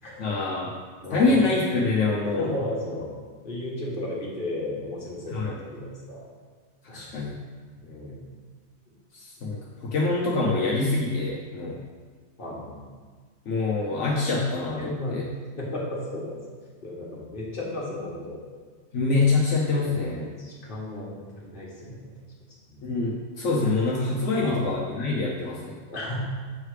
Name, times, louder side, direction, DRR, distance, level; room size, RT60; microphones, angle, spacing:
voice 1, 0.2-0.7 1.1-2.5 5.3-5.6 6.8-7.4 9.1-11.8 13.5-15.2 18.9-20.3 22.8-25.8, left 3 dB, 75° left, -4 dB, 1.1 m, -25 dB
voice 2, 1.0-1.4 2.2-3.1 3.4-6.2 6.8-7.1 7.7-8.2 12.4-12.8 14.8-15.1 15.6-16.4 16.8-18.4 19.7-22.1 22.7-22.8 24.4-24.6 25.9-26.2, left 1 dB, 45° left, -5 dB, 1.6 m, -34 dB
7.3 x 3.3 x 4.8 m, 1.5 s
omnidirectional pair, 1.3 m